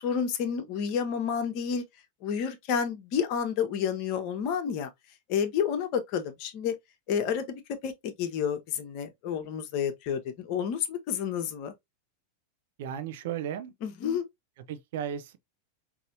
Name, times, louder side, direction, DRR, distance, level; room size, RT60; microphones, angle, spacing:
voice 1, 0.0-1.8 2.2-4.9 5.3-6.8 7.1-11.7 13.8-14.3, left 7 dB, 45° left, 0.9 m, -30 dB
voice 2, 12.8-13.7 14.7-15.4, right 9 dB, 55° right, 0.7 m, -35 dB
5.3 x 2.8 x 2.6 m
figure-of-eight pair, 90°, 0 cm